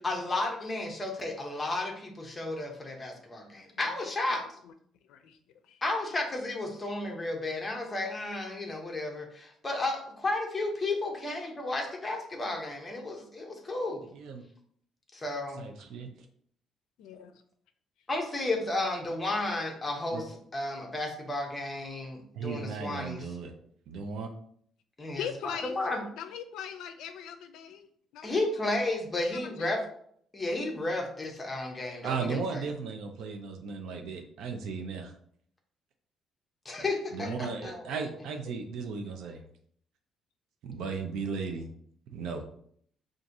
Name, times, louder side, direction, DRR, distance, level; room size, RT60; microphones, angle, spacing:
voice 1, 0.0-4.4 5.8-14.1 15.1-15.6 18.1-20.2 20.5-23.2 25.0-26.0 28.2-29.8 30.3-32.6 36.6-37.8, left 2 dB, 15° left, 1 dB, 0.7 m, -33 dB
voice 2, 14.1-14.4 15.6-16.1 20.1-20.2 22.3-23.5 23.9-24.3 32.0-35.1 37.1-39.4 40.6-41.7 42.1-42.5, right 5 dB, 65° right, 4 dB, 0.5 m, -36 dB
voice 3, 17.0-17.4 25.2-27.9 28.1-28.7 29.2-29.7 37.2-37.4, left 8 dB, 75° left, 8 dB, 0.4 m, -41 dB
6.0 x 2.5 x 2.6 m, 0.63 s
cardioid pair, 175°, 0 cm